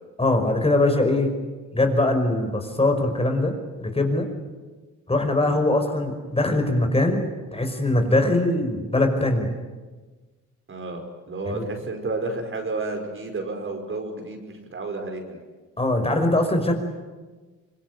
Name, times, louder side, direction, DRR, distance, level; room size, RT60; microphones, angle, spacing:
voice 1, 0.2-1.3 1.7-3.5 3.8-4.3 5.1-7.2 7.5-9.5 11.5-11.6 15.8-16.8, left 2 dB, 20° left, 5 dB, 5.5 m, -22 dB
voice 2, 10.7-15.4, right 3 dB, 45° right, 4 dB, 5.4 m, -31 dB
26.0 x 22.0 x 9.6 m, 1.3 s
cardioid pair, 90°, 30 cm